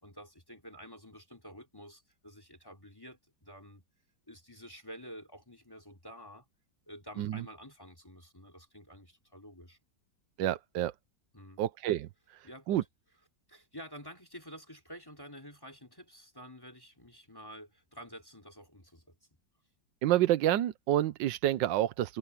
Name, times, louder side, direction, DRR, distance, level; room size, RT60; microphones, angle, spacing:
voice 1, 0.0-3.8 4.3-6.4 6.9-9.8 11.3-11.6 12.4-12.9 13.5-19.1, equal, 10° left, 3.3 m, -50 dB
voice 2, 10.4-10.9 11.6-12.1 12.7-12.8 20.0-22.2, right 13 dB, 85° right, 1.4 m, -28 dB
omnidirectional pair, 1.9 m